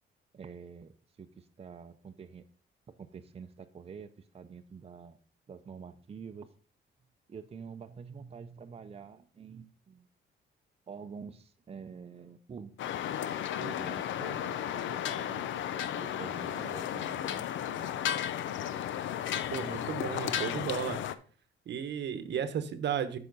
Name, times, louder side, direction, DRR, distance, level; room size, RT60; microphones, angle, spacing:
voice 1, 0.3-2.4 2.9-5.2 5.5-6.5 7.3-10.1 10.9-13.0 13.6-15.5 16.0-17.9, right 6 dB, 30° right, 7 dB, 0.6 m, -47 dB
sound 1, 12.8-21.1, left 10 dB, 75° left, 0.6 m, -34 dB
voice 2, 19.5-21.0 21.7-23.2, right 8 dB, 65° right, 12 dB, 0.9 m, -34 dB
8.4 x 5.9 x 3.9 m, 0.41 s
cardioid pair, 90°, 20 cm